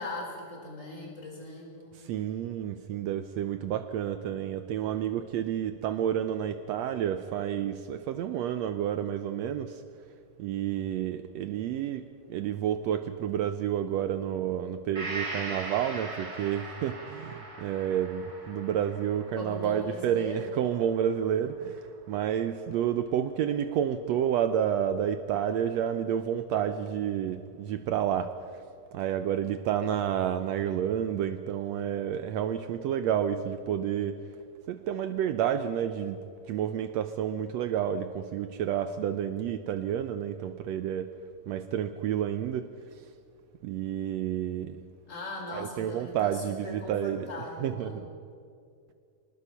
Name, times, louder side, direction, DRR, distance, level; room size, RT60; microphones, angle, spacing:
voice 1, 0.0-2.0 19.4-20.4 45.1-48.0, left 1 dB, 20° left, 0 dB, 4.9 m, -39 dB
voice 2, 1.9-9.8 10.4-28.3 28.9-34.2 34.7-36.2 36.5-41.1 41.5-42.7 43.6-44.8 45.5-47.3 47.6-48.1, right 9 dB, 90° right, 9 dB, 1.5 m, -30 dB
Gong, 14.9-22.6 23.0-23.1, right 2 dB, 30° right, 3.1 m, -41 dB
25.0 x 19.5 x 5.7 m, 2.3 s
omnidirectional pair, 3.8 m